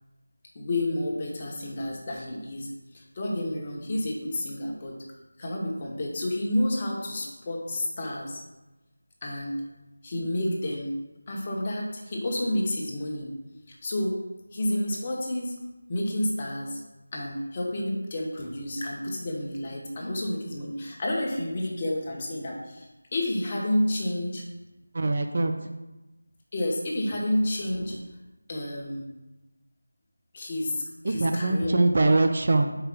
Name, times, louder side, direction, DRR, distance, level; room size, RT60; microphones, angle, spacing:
voice 1, 0.5-5.0 5.4-8.4 9.2-9.6 10.0-10.9 11.3-13.3 13.7-14.2 14.5-15.6 15.9-16.8 17.1-24.4 26.5-28.0 28.5-29.1 30.3-31.8, left 1 dB, 25° left, -2 dB, 1.1 m, -30 dB
voice 2, 24.9-25.7 31.0-32.7, right 2 dB, 45° right, 6 dB, 0.5 m, -23 dB
4.9 x 4.7 x 6.0 m, 1.0 s
figure-of-eight pair, 170°, 0 cm